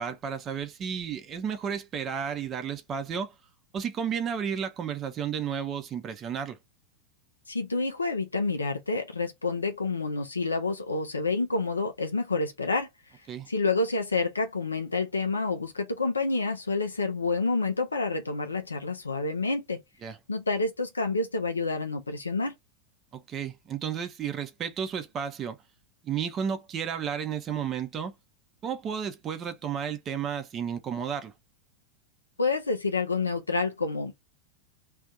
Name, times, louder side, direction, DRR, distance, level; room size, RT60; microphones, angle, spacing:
voice 1, 0.0-3.3 3.7-6.6 13.3-13.5 20.0-20.2 23.1-25.6 26.0-28.1 28.6-31.3, right 7 dB, 30° right, 0.7 m, -32 dB
voice 2, 7.5-12.9 13.5-19.8 20.3-22.5 32.4-34.2, left 3 dB, 75° left, 0.5 m, -28 dB
2.6 x 2.4 x 3.6 m
figure-of-eight pair, 90°, 0 cm